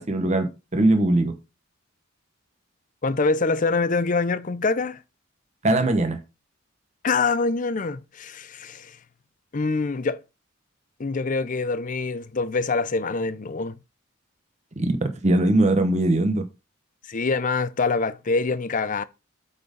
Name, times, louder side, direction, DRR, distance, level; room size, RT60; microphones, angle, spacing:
voice 1, 0.0-1.4 5.6-6.2 14.8-16.5, right 2 dB, 35° right, 1.0 m, -21 dB
voice 2, 3.0-5.0 7.0-9.0 9.5-10.2 11.0-13.7 17.1-19.0, left 4 dB, 40° left, 0.6 m, -25 dB
8.5 x 4.3 x 5.2 m
head